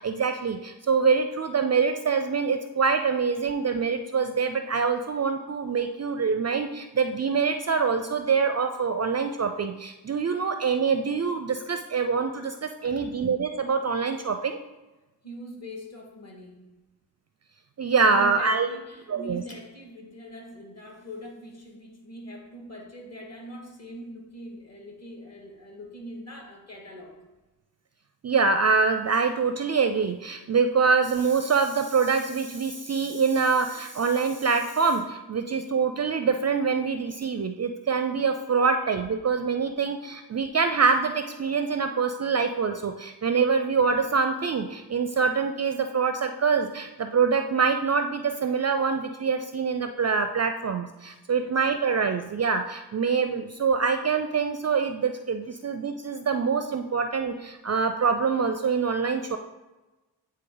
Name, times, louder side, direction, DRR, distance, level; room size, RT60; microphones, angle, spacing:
voice 1, 0.0-14.6 17.8-18.7 19.1-19.4 28.2-59.4, right 5 dB, 35° right, 7 dB, 0.4 m, -25 dB
voice 2, 12.8-13.1 15.2-16.7 18.1-27.2 51.3-51.6, equal, 35° left, 0 dB, 2.0 m, -42 dB
9.0 x 3.2 x 3.9 m, 1.1 s
cardioid pair, 60°, 44 cm